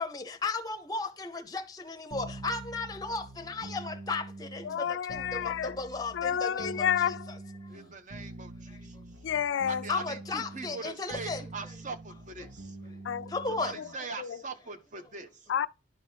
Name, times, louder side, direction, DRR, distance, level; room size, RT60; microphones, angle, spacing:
voice 1, 0.0-6.9 7.6-7.7 8.7-8.9 9.9-11.5 13.3-13.7, left 3 dB, 20° left, 0.6 m, -35 dB
sound 1, 2.1-14.0, right 2 dB, 85° right, 1.5 m, -45 dB
voice 2, 4.6-5.8 6.1-7.3 9.2-9.9 13.0-13.3 13.8-13.9 14.2-14.4 15.5-15.7, left 8 dB, 70° left, 0.3 m, -30 dB
voice 3, 7.7-9.0 9.7-13.0 13.5-15.5, right 4 dB, 40° right, 0.7 m, -42 dB
11.0 x 4.1 x 3.3 m
head